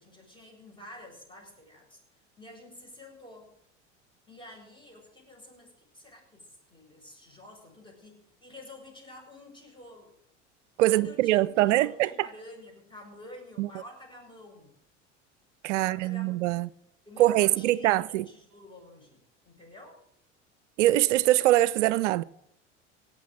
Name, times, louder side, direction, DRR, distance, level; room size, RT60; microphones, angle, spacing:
voice 1, 0.0-2.0 2.4-3.6 4.3-10.1 10.9-14.7 15.7-16.7 17.1-20.0, left 1 dB, 15° left, 7.4 m, -49 dB
voice 2, 10.8-12.1 13.6-13.7 15.6-16.7 17.2-18.3 20.8-22.2, right 15 dB, 70° right, 0.6 m, -23 dB
17.5 x 6.7 x 7.7 m
hypercardioid pair, 75°, 37 cm